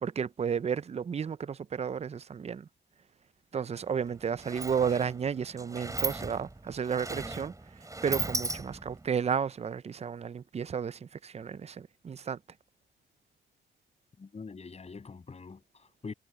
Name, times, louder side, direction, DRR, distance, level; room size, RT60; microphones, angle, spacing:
voice 1, 0.0-2.7 3.5-12.4, right 7 dB, 30° right, 0.6 m, -33 dB
Sliding door, 3.7-3.9 4.1-9.1, right 2 dB, 15° right, 3.5 m, -37 dB
voice 2, 14.2-16.1, left 4 dB, 35° left, 7.1 m, -44 dB
cardioid pair, 90°, 20 cm